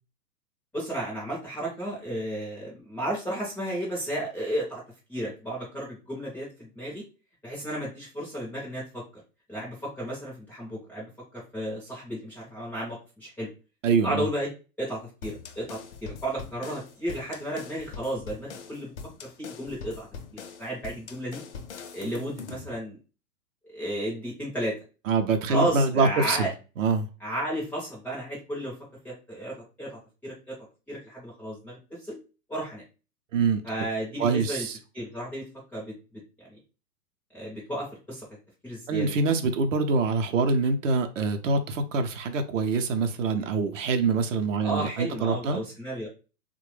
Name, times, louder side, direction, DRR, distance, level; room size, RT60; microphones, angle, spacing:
voice 1, 0.7-4.8 5.1-7.0 7.4-9.0 9.5-13.5 14.0-14.5 14.8-18.9 19.2-20.1 20.3-21.4 21.9-23.0 23.6-24.8 25.5-26.5 27.2-28.7 29.0-30.6 30.9-32.2 32.5-32.8 33.6-34.7 34.9-36.6 37.3-38.3 38.6-39.2 44.6-46.1, right 1 dB, 5° left, 0.4 m, -33 dB
voice 2, 13.8-14.3 25.1-26.5 26.8-27.1 33.3-33.6 34.2-34.8 38.9-45.6, right 4 dB, 55° right, 0.6 m, -25 dB
sound 1, 15.2-22.7, left 5 dB, 50° left, 0.6 m, -42 dB
3.1 x 2.2 x 3.1 m
figure-of-eight pair, 110°, 46 cm